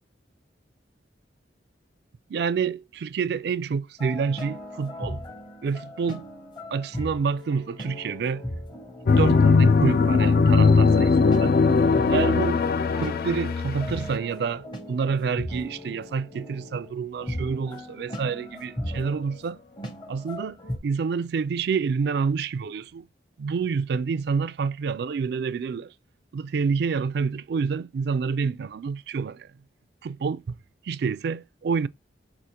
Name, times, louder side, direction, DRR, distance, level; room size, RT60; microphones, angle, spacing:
voice 1, 2.3-5.2 5.6-6.3 6.7-8.4 9.2-11.5 12.1-12.6 13.0-19.6 20.1-20.6 20.8-23.1 23.4-25.9 26.3-29.5 30.0-30.6 30.8-31.9, right 5 dB, 60° right, 0.3 m, -28 dB
sound 1, 4.0-20.8, left 1 dB, 25° left, 0.8 m, -38 dB
sound 2, 9.1-14.1, left 4 dB, 55° left, 0.3 m, -19 dB
5.0 x 2.5 x 4.2 m
head